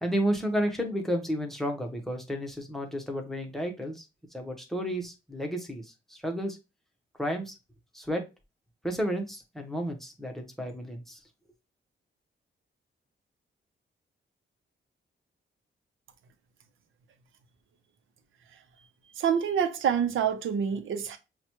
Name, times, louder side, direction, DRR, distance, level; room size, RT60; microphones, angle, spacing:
voice 1, 0.0-4.0 4.3-6.6 7.2-7.5 7.9-8.3 8.8-11.2, equal, ahead, 0.8 m, -32 dB
voice 2, 19.2-21.2, right 8 dB, 80° right, 0.6 m, -27 dB
5.9 x 2.2 x 2.9 m
wide cardioid pair, 165°, 21 cm